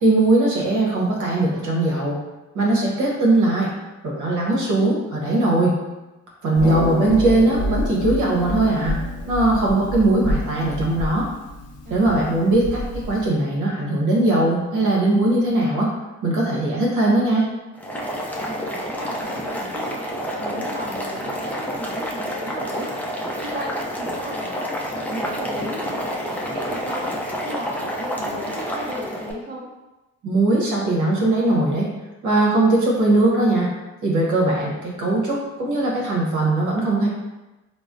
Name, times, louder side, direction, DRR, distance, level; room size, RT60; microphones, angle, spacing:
voice 1, 0.0-2.2 2.5-3.7 4.0-5.7 6.4-9.0 9.3-11.3 11.9-15.9 16.2-17.4 30.2-31.9 32.2-33.7 34.0-37.1, right 2 dB, 80° right, -4 dB, 0.9 m, -20 dB
Harp, 6.5-13.3, left 1 dB, 55° left, 0.6 m, -28 dB
Boiling, 17.7-29.3, equal, 5° left, 0.4 m, -29 dB
voice 2, 18.2-24.7 25.0-27.0 27.4-29.7, right 1 dB, 35° right, -4 dB, 0.9 m, -35 dB
3.7 x 2.0 x 2.5 m, 1.1 s
cardioid pair, 90°, 30 cm